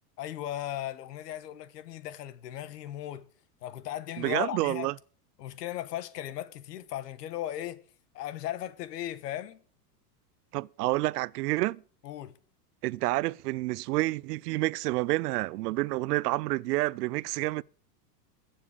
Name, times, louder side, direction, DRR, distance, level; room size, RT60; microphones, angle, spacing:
voice 1, 0.2-3.3 3.6-4.9 5.4-7.8 8.1-9.6 12.0-12.4, left 12 dB, 85° left, 1.4 m, -37 dB
voice 2, 4.2-4.9 10.5-11.8 12.8-17.6, right 20 dB, 75° right, 0.6 m, -29 dB
21.5 x 7.3 x 5.1 m
supercardioid pair, 165°, 47 cm